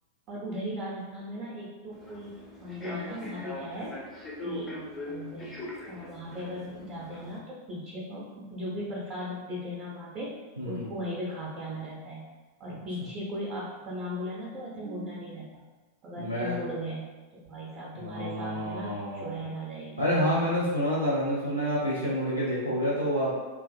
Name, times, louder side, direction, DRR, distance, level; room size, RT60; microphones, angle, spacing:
voice 1, 0.3-3.9 4.4-5.6 5.9-10.3 10.6-12.3 12.6-15.6 16.0-20.1, equal, 35° right, -6 dB, 0.5 m, -37 dB
Human voice / Subway metro underground, 1.9-7.4, left 1 dB, 20° left, 0.5 m, -41 dB
voice 2, 10.6-10.9 14.7-15.3 16.2-16.6 17.9-19.4 20.0-23.3, equal, 90° left, -8 dB, 0.5 m, -29 dB
2.4 x 2.3 x 2.3 m, 1.3 s
figure-of-eight pair, 90°, 0 cm